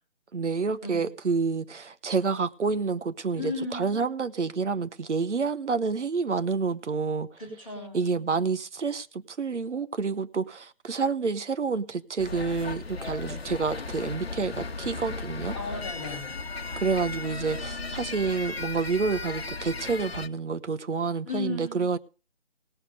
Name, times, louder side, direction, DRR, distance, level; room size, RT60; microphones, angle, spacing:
voice 1, 0.3-7.4 7.9-15.6 16.8-22.0, right 5 dB, 80° right, 1.1 m, -28 dB
voice 2, 3.4-3.9 7.4-8.0 15.5-16.4 21.2-21.8, left 3 dB, ahead, 1.3 m, -35 dB
sound 1, 12.2-20.3, left 3 dB, 60° left, 1.1 m, -36 dB
18.0 x 7.2 x 5.2 m
figure-of-eight pair, 175°, 35 cm